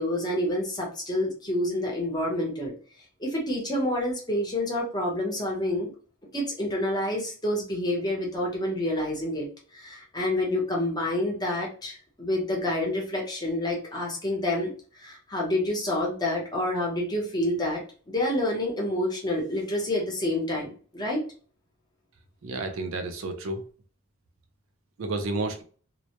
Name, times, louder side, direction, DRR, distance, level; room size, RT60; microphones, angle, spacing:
voice 1, 0.0-2.7 3.2-5.9 6.3-9.5 9.7-21.2, left 1 dB, 20° left, -2 dB, 0.7 m, -28 dB
voice 2, 22.4-23.6 25.0-25.6, right 2 dB, 60° right, 5 dB, 0.4 m, -31 dB
2.1 x 2.1 x 2.8 m, 0.40 s
head